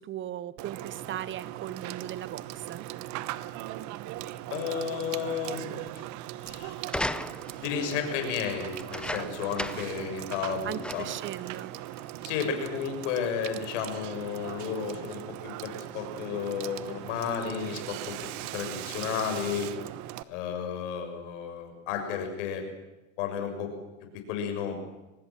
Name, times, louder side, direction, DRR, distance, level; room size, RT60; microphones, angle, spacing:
voice 1, 0.0-2.8 10.6-11.7, right 11 dB, 30° right, 18 dB, 1.1 m, -38 dB
Water / Water tap faucet / Sink (filling or washing), 0.6-20.2, right 15 dB, 45° right, 1.2 m, -39 dB
voice 2, 4.5-5.9 6.4-6.7 7.5-11.1 12.2-18.1 18.5-19.7 20.3-22.6 23.2-23.7 24.3-24.8, left 7 dB, 65° left, 6 dB, 6.7 m, -32 dB
sound 1, 6.8-7.7 8.7-10.0 10.4-10.5 10.8-11.3 12.0-12.1, left 1 dB, ahead, 0.8 m, -35 dB
24.0 x 20.0 x 7.6 m, 1.0 s
supercardioid pair, 115°, 39 cm